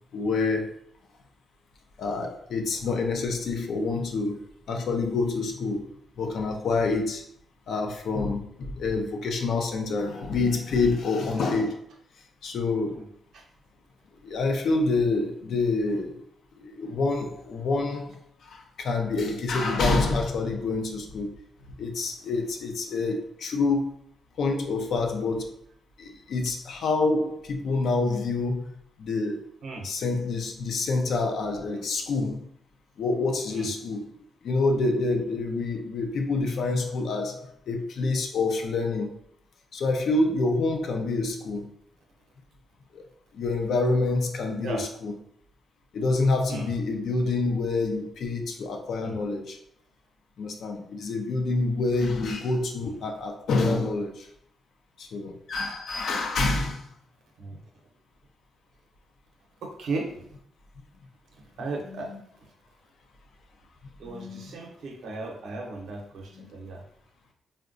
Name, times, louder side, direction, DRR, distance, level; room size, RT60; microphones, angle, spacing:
voice 1, 0.1-0.8 2.0-5.8 6.2-7.2 7.7-11.8 12.4-13.0 14.2-16.2 16.6-18.1 18.4-21.3 21.8-23.9 24.4-25.5 26.0-28.7 29.0-29.5 29.8-32.5 33.0-34.1 34.4-37.4 37.7-39.2 39.7-41.7 42.9-43.0 43.3-45.1 45.9-49.6 50.4-54.3 55.0-56.8 61.9-62.2 64.0-64.5 66.3-66.5, left 3 dB, 70° left, 3 dB, 0.5 m, -27 dB
voice 2, 59.6-60.3 61.4-62.1 64.0-66.8, right 3 dB, 75° right, 1 dB, 0.7 m, -36 dB
3.6 x 2.2 x 2.5 m, 0.67 s
cardioid pair, 85°, 0 cm